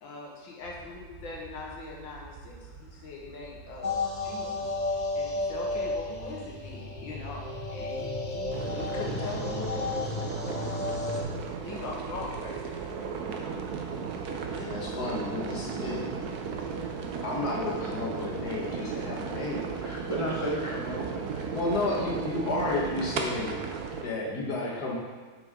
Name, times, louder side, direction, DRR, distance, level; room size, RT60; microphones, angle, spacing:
voice 1, 0.0-4.7 5.2-7.4 7.7-10.2 11.6-12.9, left 3 dB, 80° left, -3 dB, 2.1 m, -41 dB
sound 1, 0.6-9.9, right 4 dB, 80° right, 3.2 m, -48 dB
sound 2, 3.8-11.2, left 3 dB, 30° left, 1.0 m, -33 dB
sound 3, 8.5-24.0, right 5 dB, 65° right, 1.2 m, -35 dB
voice 2, 14.6-16.3 16.6-19.8 21.5-23.5 24.0-24.9, left 2 dB, 60° left, -4 dB, 2.1 m, -32 dB
voice 3, 19.8-21.6, right 1 dB, 20° right, -6 dB, 1.3 m, -34 dB
8.8 x 6.5 x 3.8 m, 1.5 s
omnidirectional pair, 2.0 m